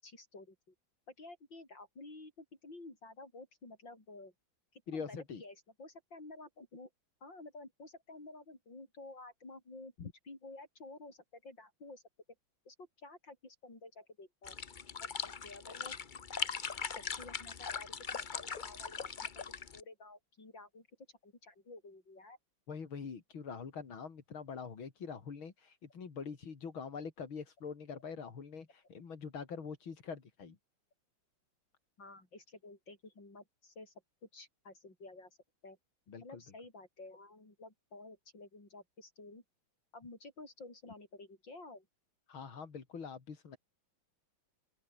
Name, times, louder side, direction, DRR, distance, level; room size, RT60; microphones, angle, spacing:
voice 1, 0.0-0.7 1.2-4.3 4.7-6.9 7.2-9.9 10.2-12.0 12.7-14.6 15.2-15.9 16.8-20.9 21.2-22.4 32.0-33.9 34.3-35.4 35.6-35.8 36.2-39.4 39.9-41.9, left 2 dB, 65° left, 7.7 m, -52 dB
voice 2, 4.9-5.4 10.0-10.1 22.7-30.6 36.1-36.4 42.3-43.6, left 6 dB, 85° left, 3.5 m, -44 dB
sound 1, 14.4-19.8, left 6 dB, 40° left, 0.7 m, -40 dB
open air
omnidirectional pair, 2.2 m